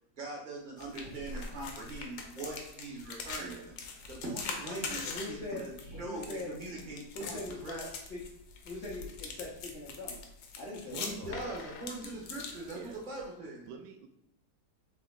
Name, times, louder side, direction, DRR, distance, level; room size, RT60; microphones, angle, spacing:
voice 1, 0.2-3.6 4.1-7.8 11.0-12.8 13.0-13.6, right 2 dB, 30° right, -3 dB, 1.0 m, -42 dB
sound 1, 0.8-13.2, left 4 dB, 75° left, 1.3 m, -43 dB
voice 2, 3.4-3.8 10.9-11.5 12.7-13.0 13.6-14.1, right 7 dB, 85° right, 5 dB, 1.3 m, -47 dB
voice 3, 4.6-5.6 5.9-6.5 7.1-8.2 8.6-10.2 10.6-11.1, left 2 dB, 60° left, -4 dB, 0.7 m, -41 dB
3.9 x 3.4 x 3.7 m, 0.81 s
omnidirectional pair, 2.1 m